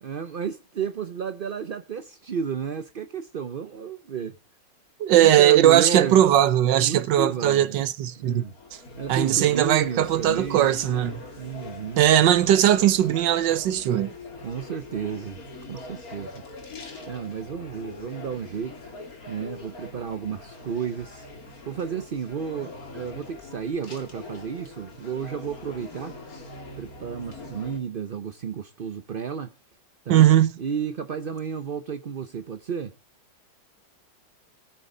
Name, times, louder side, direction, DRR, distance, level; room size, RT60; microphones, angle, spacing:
voice 1, 0.0-4.4 5.1-6.2 6.8-7.8 8.2-8.5 9.0-10.8 11.4-12.1 14.4-15.4 15.7-16.4 17.1-18.9 19.3-21.3 21.7-26.1 26.8-29.5 30.0-30.3 30.6-33.0, right 6 dB, 55° right, 0.6 m, -32 dB
voice 2, 5.0-8.4 9.1-11.2 12.0-14.1 30.1-30.5, right 12 dB, 80° right, 1.5 m, -19 dB
sound 1, 8.0-27.8, left 3 dB, 55° left, 2.8 m, -42 dB
20.5 x 6.9 x 3.8 m
omnidirectional pair, 1.9 m